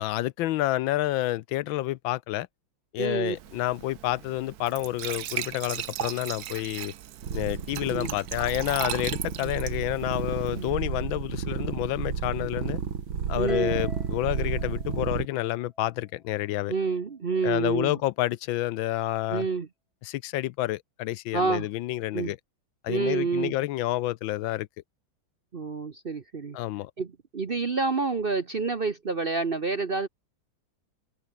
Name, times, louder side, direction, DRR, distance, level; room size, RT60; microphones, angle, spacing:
voice 1, 0.0-2.5 2.9-6.9 7.3-12.8 13.3-16.7 17.4-19.5 20.0-22.4 22.8-24.7 26.5-26.9, left 16 dB, 80° left, 1.4 m, -29 dB
voice 2, 3.0-3.4 7.9-8.1 9.4-9.5 10.5-10.7 12.4-12.5 13.4-13.8 16.7-18.0 19.3-19.7 21.3-21.7 22.1-22.3 22.9-23.5 25.5-26.6 27.0-30.1, right 4 dB, 40° right, 0.8 m, -28 dB
Glass / Trickle dribble / Fill (with liquid), 3.4-10.7, right 12 dB, 60° right, 1.1 m, -38 dB
sound 1, 7.2-15.3, right 7 dB, 85° right, 3.0 m, -32 dB
Harp, 13.5-15.9, left 1 dB, 15° left, 7.2 m, -42 dB
omnidirectional pair, 2.1 m